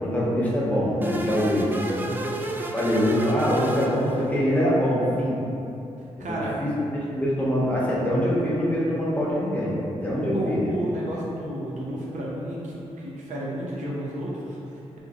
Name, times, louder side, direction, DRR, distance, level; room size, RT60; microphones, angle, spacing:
voice 1, 0.0-1.7 2.7-5.4 6.2-9.7 10.0-10.8, equal, 10° left, -7 dB, 1.0 m, -24 dB
sound 1, 1.0-4.6, right 1 dB, 15° right, 0.4 m, -32 dB
voice 2, 1.8-2.4 6.2-6.6 10.1-15.0, right 1 dB, 70° right, -5 dB, 0.7 m, -32 dB
2.7 x 2.7 x 3.5 m, 2.8 s
cardioid pair, 50°, 13 cm